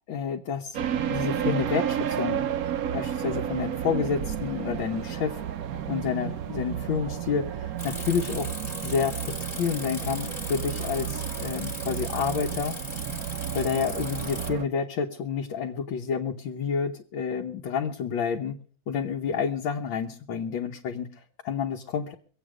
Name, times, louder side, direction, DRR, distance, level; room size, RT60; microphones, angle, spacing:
voice 1, 0.1-0.8 1.1-2.5 2.9-5.4 5.9-8.5 8.8-12.8 13.5-18.6 18.9-21.1 21.4-22.1, left 6 dB, 70° left, 0 dB, 1.8 m, -29 dB
sound 1, 0.7-14.7, right 9 dB, 60° right, 1.0 m, -32 dB
Bicycle, 7.8-14.5, left 1 dB, 20° left, 2.0 m, -39 dB
23.5 x 8.4 x 4.9 m, 0.44 s
omnidirectional pair, 2.3 m